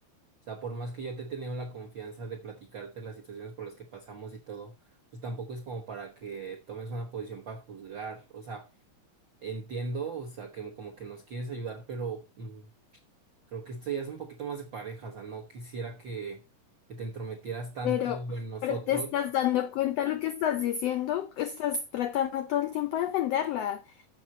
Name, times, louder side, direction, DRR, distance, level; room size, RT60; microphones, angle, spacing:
voice 1, 0.5-4.7 5.1-8.7 9.4-12.7 13.5-16.4 16.9-19.1, right 4 dB, 65° right, 1.1 m, -38 dB
voice 2, 17.8-18.2 18.6-23.8, left 11 dB, 80° left, 1.4 m, -29 dB
7.4 x 6.0 x 7.5 m
omnidirectional pair, 3.8 m